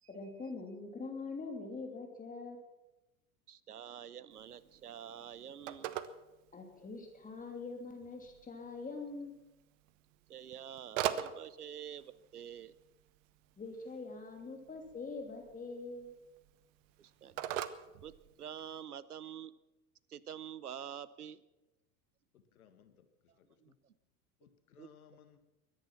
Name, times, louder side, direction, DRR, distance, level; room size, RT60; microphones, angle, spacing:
voice 1, 0.1-2.6 6.5-9.4 13.6-16.1, left 3 dB, 20° left, 2 dB, 2.8 m, -44 dB
voice 2, 3.5-6.0 10.3-12.8 17.0-17.4 18.0-19.5 20.1-21.4 23.6-23.9 24.8-24.9, right 9 dB, 90° right, 18 dB, 0.8 m, -47 dB
Telephone, 4.3-18.8, right 11 dB, 60° right, 1.1 m, -45 dB
voice 3, 22.3-23.1 23.4-23.8 24.4-25.4, left 8 dB, 75° left, 9 dB, 1.8 m, -62 dB
23.0 x 10.5 x 6.0 m, 1.0 s
hypercardioid pair, 85°, 44 cm